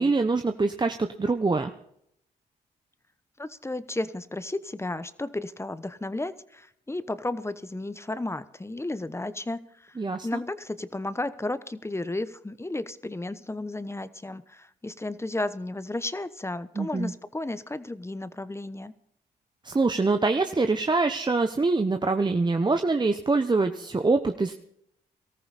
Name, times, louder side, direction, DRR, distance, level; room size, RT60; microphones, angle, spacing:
voice 1, 0.0-1.7 10.0-10.3 16.8-17.1 19.6-24.5, right 3 dB, 25° right, 7 dB, 1.0 m, -24 dB
voice 2, 3.4-10.0 10.2-18.9, left 2 dB, 15° left, 14 dB, 1.0 m, -33 dB
18.5 x 14.0 x 4.2 m, 0.72 s
supercardioid pair, 60°, 17 cm